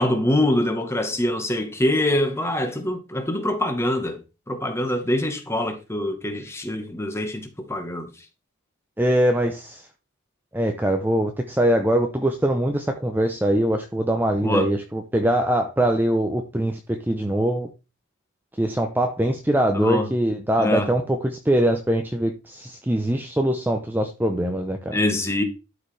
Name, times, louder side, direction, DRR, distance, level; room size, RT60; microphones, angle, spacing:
voice 1, 0.0-4.2 4.5-8.1 14.4-14.7 19.7-20.1 20.6-20.9 24.9-25.4, left 1 dB, 10° left, 1.1 m, -24 dB
voice 2, 9.0-9.8 10.5-17.7 18.6-21.2 21.4-25.0, right 1 dB, 10° right, 0.6 m, -22 dB
12.0 x 4.8 x 3.3 m
head